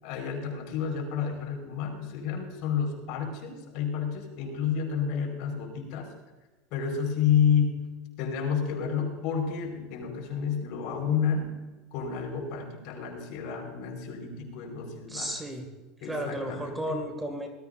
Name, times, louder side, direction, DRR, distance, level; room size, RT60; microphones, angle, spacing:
voice 1, 0.0-6.1 6.7-7.8 8.2-11.5 11.9-15.3 16.0-17.0, left 7 dB, 60° left, 2 dB, 4.6 m, -30 dB
voice 2, 15.1-15.6 16.0-17.5, right 1 dB, 10° right, 4 dB, 2.2 m, -33 dB
19.5 x 13.5 x 2.6 m, 1.2 s
supercardioid pair, 135°, 0 cm